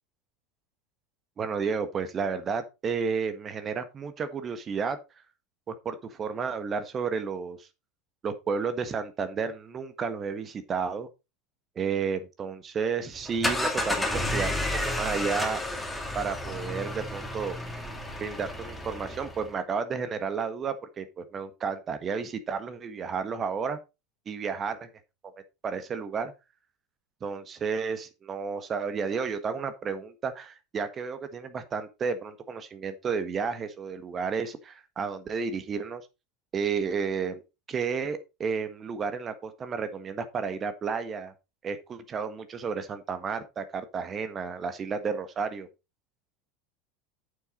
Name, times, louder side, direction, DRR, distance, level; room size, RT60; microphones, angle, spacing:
voice 1, 1.4-5.0 5.7-7.7 8.2-11.1 11.7-15.6 16.1-17.5 18.2-23.8 24.2-24.9 25.6-26.3 27.2-36.0 36.5-37.4 37.7-41.3 41.6-45.7, right 5 dB, 30° right, 1.5 m, -32 dB
sound 1, 13.1-19.5, left 1 dB, 5° left, 2.5 m, -31 dB
8.8 x 7.5 x 4.1 m
figure-of-eight pair, 80°, 0 cm